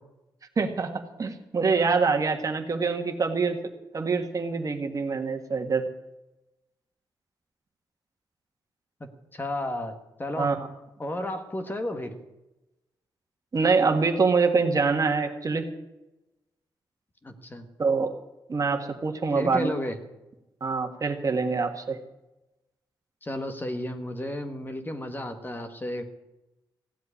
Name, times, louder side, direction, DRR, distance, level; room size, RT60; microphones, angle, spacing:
voice 1, 0.6-3.6 3.9-5.9 10.4-10.6 13.5-15.7 17.8-18.1 18.5-19.7 20.6-22.0, right 4 dB, 40° right, 5 dB, 1.8 m, -25 dB
voice 2, 9.0-9.9 10.2-10.5 11.0-12.1 17.2-17.7 19.3-20.0 23.2-26.0, left 1 dB, 25° left, 7 dB, 1.5 m, -33 dB
16.0 x 7.8 x 9.9 m, 0.98 s
cardioid pair, 105°, 9 cm